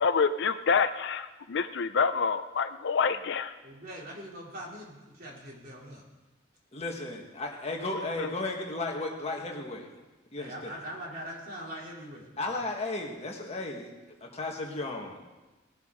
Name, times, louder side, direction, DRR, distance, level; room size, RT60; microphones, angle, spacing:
voice 1, 0.0-3.5 8.2-8.3, left 5 dB, 60° left, 11 dB, 0.5 m, -27 dB
voice 2, 3.6-6.0 10.4-12.6, equal, 45° right, -3 dB, 3.3 m, -42 dB
voice 3, 6.7-9.9 10.3-10.7 12.4-13.9 14.2-15.2, left 2 dB, 30° left, 1 dB, 1.6 m, -34 dB
19.0 x 10.5 x 3.9 m, 1.1 s
head